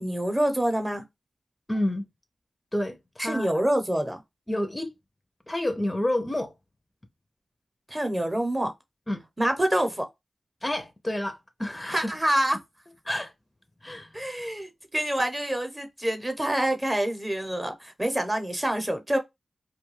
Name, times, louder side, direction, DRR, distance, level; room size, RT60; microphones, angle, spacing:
voice 1, 0.0-1.0 3.2-4.2 7.9-8.7 9.4-10.1 11.9-12.6 14.1-19.2, right 1 dB, 20° right, 0.7 m, -26 dB
voice 2, 1.7-2.1 2.7-3.5 4.5-4.9 5.5-6.5 9.1-9.2 10.6-12.1 13.1-13.3 13.8-14.1, left 1 dB, 25° left, 0.5 m, -29 dB
2.3 x 2.2 x 3.1 m
cardioid pair, 45°, 0 cm